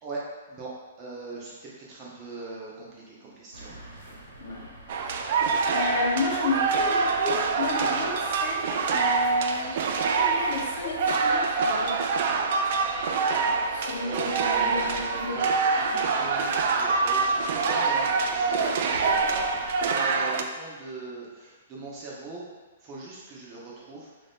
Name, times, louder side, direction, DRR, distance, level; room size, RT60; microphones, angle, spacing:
voice 1, 1.0-3.8 7.8-8.0 14.0-22.5 22.8-24.1, right 2 dB, 25° right, -5 dB, 0.8 m, -40 dB
sound 1, 3.5-19.9, right 1 dB, 85° right, 1.1 m, -43 dB
sound 2, 4.9-20.4, right 4 dB, 50° right, 0.3 m, -25 dB
voice 2, 5.7-8.6 8.9-9.8 10.1-12.0 13.4-15.4 15.9-16.1, left 2 dB, 40° left, -3 dB, 0.8 m, -31 dB
Female speech woman speaking / Yell, 10.7-15.0, left 4 dB, 60° left, 0.4 m, -43 dB
3.4 x 2.7 x 3.5 m, 1.3 s
hypercardioid pair, 155°, 0 cm